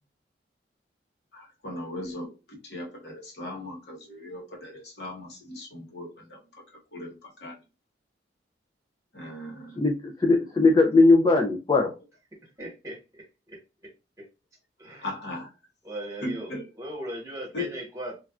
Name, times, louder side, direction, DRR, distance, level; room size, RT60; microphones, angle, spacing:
voice 1, 1.3-6.4 6.9-7.5 9.1-9.7 15.0-15.5 16.2-16.7 17.5-17.7, left 2 dB, 65° left, 1.1 m, -38 dB
voice 2, 9.8-11.9, left 3 dB, 25° left, 0.3 m, -20 dB
voice 3, 12.6-13.9 14.2-14.3 14.8-15.1 15.8-18.2, right 1 dB, 15° right, 1.1 m, -39 dB
3.1 x 2.4 x 2.3 m
head